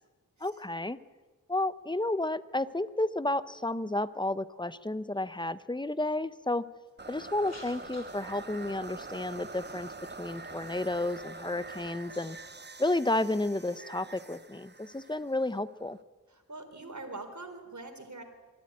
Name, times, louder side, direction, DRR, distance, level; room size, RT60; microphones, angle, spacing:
voice 1, 0.4-1.0 1.5-6.7 7.1-12.4 12.8-16.0, left 2 dB, 15° left, 15 dB, 0.8 m, -32 dB
sound 1, 7.0-16.0, right 3 dB, 30° right, 0.8 m, -45 dB
sound 2, 7.2-12.5, left 2 dB, 50° left, 3.0 m, -58 dB
voice 2, 16.3-18.2, right 2 dB, 55° right, 5 dB, 3.9 m, -43 dB
23.0 x 14.5 x 9.8 m, 1.3 s
wide cardioid pair, 50°, 34 cm